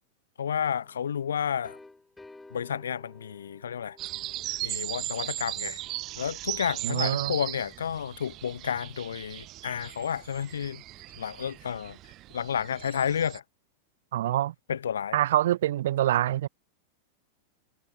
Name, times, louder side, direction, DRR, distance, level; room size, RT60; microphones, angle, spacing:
voice 1, 0.4-1.8 2.5-4.0 4.6-5.8 6.2-10.8 11.1-12.0 12.3-13.4 14.7-15.2, left 8 dB, 65° left, 0.3 m, -31 dB
sound 1, 0.6-6.2, left 2 dB, 10° left, 4.1 m, -54 dB
sound 2, 4.0-13.4, right 16 dB, 35° right, 0.9 m, -37 dB
voice 2, 6.8-7.4 14.1-14.5 15.1-16.5, right 13 dB, 60° right, 0.3 m, -25 dB
figure-of-eight pair, 90°, 0 cm